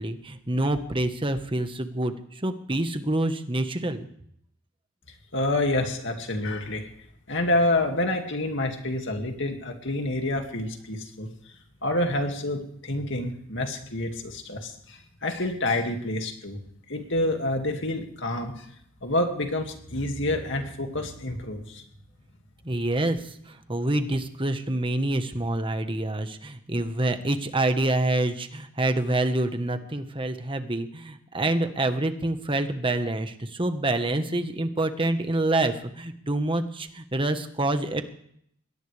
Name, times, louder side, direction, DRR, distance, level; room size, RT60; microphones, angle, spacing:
voice 1, 0.0-4.1 22.6-38.0, right 1 dB, 25° right, 8 dB, 1.4 m, -27 dB
voice 2, 5.3-6.9 7.3-11.3 11.8-16.6 16.9-18.7 19.0-21.8, left 1 dB, 60° left, 4 dB, 2.3 m, -28 dB
23.0 x 18.0 x 3.5 m, 0.69 s
head